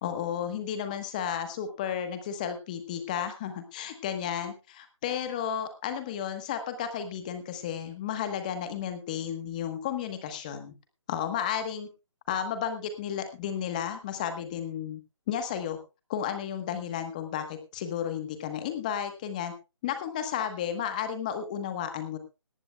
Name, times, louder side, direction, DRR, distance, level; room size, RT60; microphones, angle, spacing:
voice 1, 0.0-10.7 11.1-11.9 12.3-15.0 15.3-15.8 16.1-19.5 19.8-22.2, left 9 dB, 15° left, 8 dB, 1.2 m, -33 dB
18.5 x 14.0 x 2.3 m, 0.28 s
hypercardioid pair, 170°, 16 cm